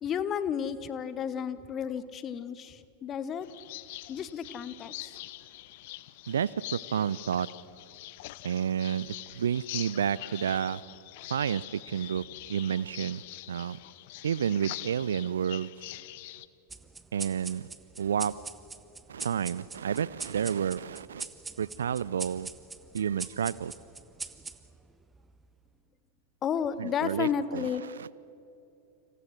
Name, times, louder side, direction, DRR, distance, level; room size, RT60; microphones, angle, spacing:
voice 1, 0.0-3.5 4.1-5.2 26.4-27.8, left 8 dB, 30° left, 14 dB, 1.1 m, -32 dB
sound 1, 3.4-16.5, left 18 dB, 50° left, 0.8 m, -44 dB
voice 2, 6.3-7.5 8.4-10.8 11.3-12.2 12.5-13.2 13.5-13.8 14.2-15.7 17.1-17.7 18.0-18.3 19.1-21.3 21.6-22.5 22.9-23.7 26.8-28.1, right 8 dB, 65° right, 21 dB, 0.5 m, -30 dB
sound 2, 16.7-25.6, right 4 dB, 10° right, 1.0 m, -43 dB
30.0 x 26.5 x 6.3 m, 2.7 s
figure-of-eight pair, 90°, 0 cm